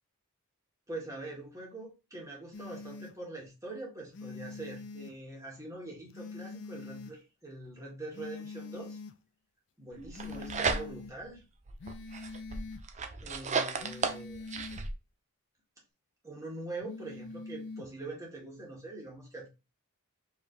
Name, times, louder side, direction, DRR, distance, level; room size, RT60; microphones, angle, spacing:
voice 1, 0.9-9.0 9.8-11.4 13.2-14.4 16.2-19.5, right 2 dB, 15° right, -2 dB, 1.8 m, -43 dB
sound 1, 2.5-3.1 4.1-5.1 6.1-7.2 8.1-9.2 10.1-11.2 11.8-12.8 13.8-14.8 16.8-17.9, left 3 dB, 55° left, 0.4 m, -44 dB
sound 2, 10.0-11.2 11.7-14.9, right 4 dB, 30° right, 0.5 m, -34 dB
4.8 x 3.2 x 3.2 m, 0.28 s
head